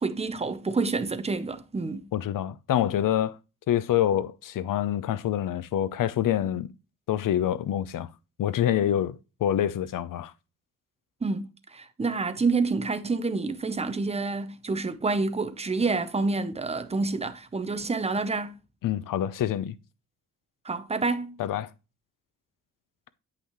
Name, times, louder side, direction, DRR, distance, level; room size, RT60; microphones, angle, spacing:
voice 1, 0.0-2.1 11.2-18.6 20.6-21.4, right 3 dB, 20° right, 0.6 m, -28 dB
voice 2, 2.1-3.4 3.7-6.7 7.1-8.1 8.4-10.3 18.8-19.8 21.4-21.7, left 11 dB, 70° left, 0.6 m, -26 dB
8.3 x 5.7 x 3.0 m
wide cardioid pair, 135°, 34 cm